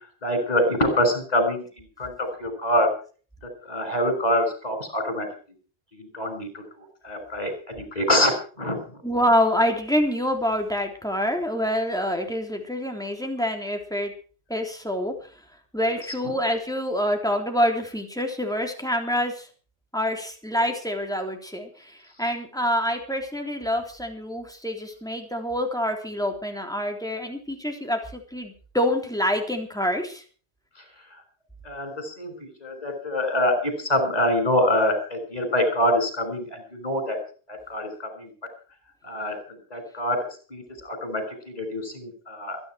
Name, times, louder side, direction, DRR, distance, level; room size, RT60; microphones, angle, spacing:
voice 1, 0.2-2.9 3.7-5.3 5.9-6.6 7.0-8.3 8.6-9.0 31.6-37.2 37.5-38.3 39.0-39.4 39.7-42.6, left 1 dB, 40° left, 6 dB, 6.1 m, -25 dB
voice 2, 9.0-14.1 14.5-15.1 15.7-19.5 19.9-30.2, equal, 5° left, 3 dB, 3.4 m, -26 dB
23.0 x 10.5 x 4.7 m, 0.40 s
omnidirectional pair, 1.1 m